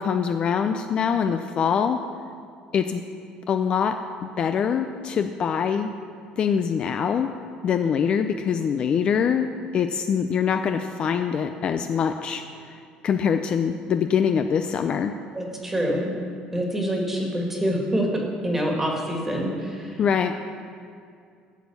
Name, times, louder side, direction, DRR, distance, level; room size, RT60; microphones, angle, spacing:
voice 1, 0.0-2.0 2.7-3.0 3.5-3.9 4.2-5.9 6.4-7.3 7.6-15.1 20.0-20.3, left 7 dB, 35° left, 7 dB, 0.4 m, -24 dB
voice 2, 15.3-16.1 16.5-19.9, equal, 10° right, 0 dB, 1.7 m, -26 dB
12.0 x 4.4 x 8.2 m, 2.3 s
cardioid pair, 145°, 3 cm